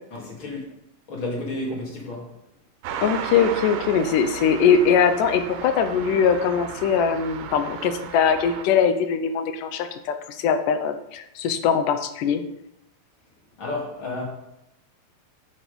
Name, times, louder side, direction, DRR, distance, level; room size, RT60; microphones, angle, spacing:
voice 1, 0.1-0.6 1.1-2.3 13.6-14.2, left 2 dB, 35° left, -2 dB, 3.0 m, -31 dB
sound 1, 2.8-8.6, right 8 dB, 85° right, 2.6 m, -35 dB
voice 2, 3.0-12.4, left 6 dB, 75° left, 9 dB, 2.2 m, -21 dB
11.0 x 6.4 x 5.2 m, 0.83 s
omnidirectional pair, 4.2 m